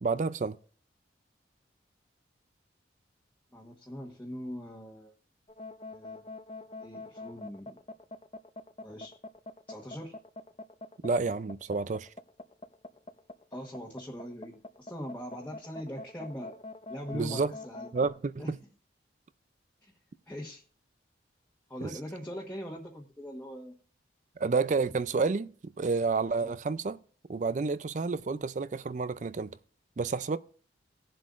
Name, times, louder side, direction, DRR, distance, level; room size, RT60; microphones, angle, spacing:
voice 1, 0.0-0.6 11.0-12.1 17.1-17.5 17.9-18.6 21.8-21.9 24.4-25.5 25.8-27.0 27.3-29.6 30.0-30.4, right 4 dB, 40° right, 0.4 m, -29 dB
voice 2, 3.5-5.1 5.9-6.2 6.8-7.8 8.8-9.1 9.7-10.2 13.5-16.6 16.9-17.9 18.4-18.5 19.8-19.9 20.3-20.6 21.7-23.8 26.4-26.6, equal, 10° left, 1.2 m, -41 dB
sound 1, 5.5-18.1, left 2 dB, 30° left, 0.5 m, -44 dB
19.0 x 7.6 x 2.5 m
head